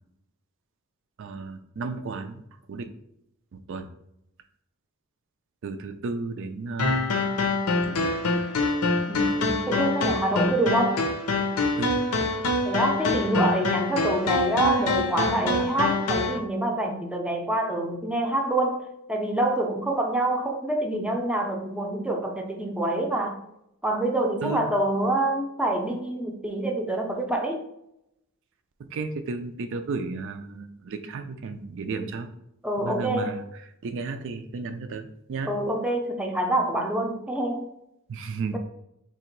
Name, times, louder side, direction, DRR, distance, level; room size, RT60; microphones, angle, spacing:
voice 1, 1.2-2.4 2.7-2.9 3.5-3.9 5.6-7.1 7.8-8.1 9.1-9.3 11.8-11.9 13.1-13.4 24.4-24.7 28.8-32.3 32.8-35.5 38.1-38.6, right 4 dB, 60° right, 8 dB, 0.4 m, -33 dB
sound 1, 6.8-16.4, left 3 dB, 90° left, 0.7 m, -25 dB
voice 2, 9.1-11.0 12.6-18.8 19.1-23.4 23.8-27.6 32.6-33.3 35.5-37.7 38.5-38.6, right 1 dB, 5° right, 1 dB, 0.5 m, -26 dB
3.7 x 3.0 x 4.5 m, 0.80 s
head